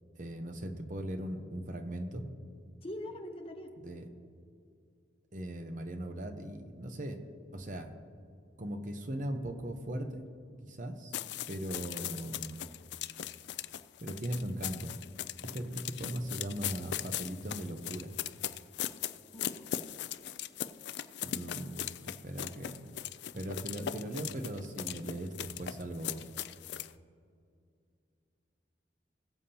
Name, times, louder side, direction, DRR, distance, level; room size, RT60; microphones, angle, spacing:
voice 1, 0.2-2.3 3.8-4.1 5.3-7.2 7.5-7.9 8.6-10.2 10.6-11.1 11.5-12.6 14.0-14.9 15.4-18.1 21.2-21.8 22.2-23.0 23.3-26.2, right 1 dB, 45° right, 6 dB, 0.9 m, -39 dB
voice 2, 2.8-3.7 19.3-19.5, left 1 dB, 30° left, 3 dB, 1.0 m, -42 dB
sound 1, 11.1-26.9, left 11 dB, 65° left, 0.4 m, -39 dB
21.5 x 7.3 x 2.9 m, 2.4 s
head